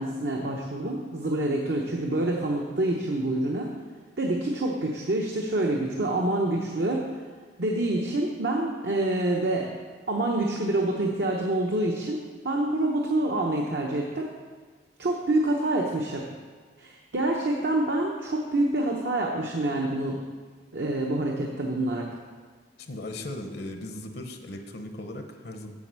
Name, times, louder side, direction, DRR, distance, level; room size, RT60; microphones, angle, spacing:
voice 1, 0.0-3.7 4.2-7.1 7.6-9.7 10.1-14.3 15.0-16.3 16.8-20.2 20.7-22.1, right 1 dB, 65° right, -1 dB, 0.8 m, -27 dB
voice 2, 22.8-25.7, left 1 dB, 60° left, 5 dB, 0.8 m, -37 dB
7.6 x 5.3 x 7.4 m, 1.5 s
head